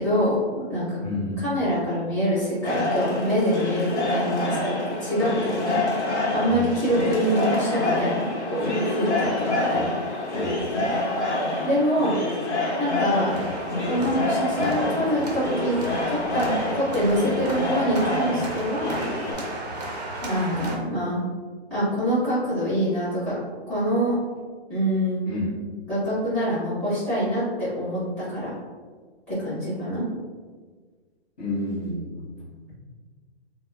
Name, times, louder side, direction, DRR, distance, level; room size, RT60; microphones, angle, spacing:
voice 1, 0.0-1.0 1.4-5.7 6.3-9.3 9.7-9.8 11.6-12.1 12.8-13.4 13.8-19.0 20.2-21.2 21.7-23.4 23.7-24.1 24.7-25.2 25.9-28.5 29.3-30.0, equal, 5° left, -13 dB, 1.1 m, -25 dB
voice 2, 1.0-1.4 6.5-6.7 9.7-10.1 10.4-11.0 25.3-25.5 31.4-32.3, left 2 dB, 40° left, -7 dB, 1.0 m, -31 dB
sound 1, 2.6-19.3, left 2 dB, 80° left, 0.9 m, -27 dB
sound 2, 13.1-20.8, right 1 dB, 40° right, 0.5 m, -34 dB
2.9 x 2.0 x 2.3 m, 1.5 s
hypercardioid pair, 165°, 34 cm